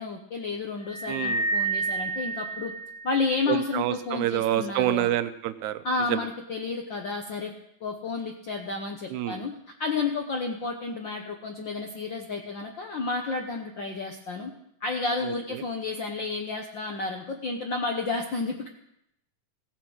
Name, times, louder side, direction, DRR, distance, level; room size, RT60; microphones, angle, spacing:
voice 1, 0.0-2.7 3.0-5.1 5.8-7.5 7.8-9.5 9.8-14.5 14.8-18.7, left 4 dB, 65° left, 2 dB, 1.1 m, -31 dB
sound 1, 0.9-3.5, right 3 dB, 85° left, 3.3 m, -30 dB
voice 2, 1.1-1.4 3.5-5.8 6.1-6.2 9.1-9.4 15.2-15.3, right 13 dB, 80° right, 13 dB, 2.0 m, -27 dB
16.0 x 8.7 x 6.2 m, 0.79 s
omnidirectional pair, 3.4 m